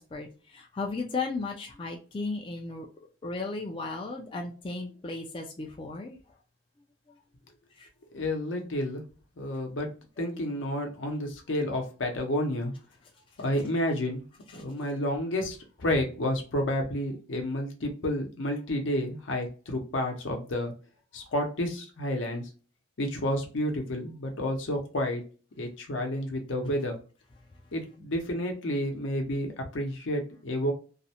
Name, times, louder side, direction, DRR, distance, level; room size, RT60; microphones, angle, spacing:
voice 1, 0.0-2.9 3.2-6.2 7.8-7.9 10.3-10.4, left 3 dB, 25° left, 0.3 m, -35 dB
voice 2, 8.1-9.0 9.4-9.9 10.2-12.7 13.4-14.2 14.5-20.7 21.1-22.4 23.0-25.2 25.6-27.0 27.7-30.7, left 1 dB, 80° left, 0.7 m, -30 dB
2.4 x 2.0 x 2.7 m
head